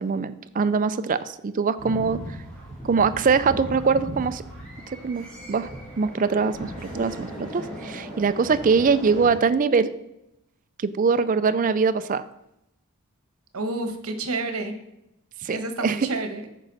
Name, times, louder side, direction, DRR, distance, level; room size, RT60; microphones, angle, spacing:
voice 1, 0.0-2.2 2.8-4.4 5.0-5.7 6.0-9.9 10.8-12.2 15.4-16.0, right 5 dB, 35° right, 13 dB, 0.4 m, -23 dB
sound 1, 1.8-9.3, equal, 5° left, 3.1 m, -37 dB
voice 2, 13.5-14.7 15.5-16.5, right 2 dB, 75° right, 7 dB, 1.1 m, -29 dB
9.1 x 6.9 x 4.0 m, 0.84 s
head